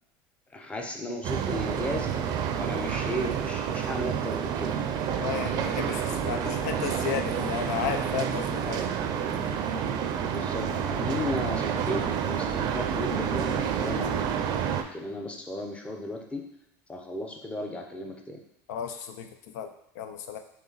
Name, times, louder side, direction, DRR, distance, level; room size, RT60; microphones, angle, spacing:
voice 1, 0.5-2.3 2.6-4.7 10.2-14.2 14.7-16.5 16.9-18.4, left 1 dB, 15° left, 2 dB, 0.7 m, -35 dB
sound 1, 1.2-14.8, right 8 dB, 50° right, 0.5 m, -29 dB
voice 2, 5.2-8.9 18.7-19.3 19.5-20.4, left 9 dB, 85° left, 6 dB, 0.5 m, -33 dB
3.9 x 3.0 x 4.0 m, 0.82 s
supercardioid pair, 110°, 9 cm